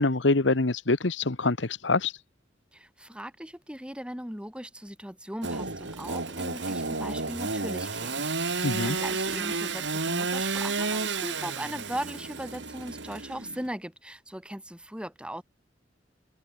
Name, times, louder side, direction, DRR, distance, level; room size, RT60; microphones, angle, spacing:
voice 1, 0.0-2.1 8.6-9.0, left 3 dB, 90° left, 1.3 m, -25 dB
voice 2, 2.7-15.4, equal, 5° right, 6.3 m, -38 dB
Engine / Sawing, 5.4-13.7, right 4 dB, 75° right, 3.0 m, -31 dB
head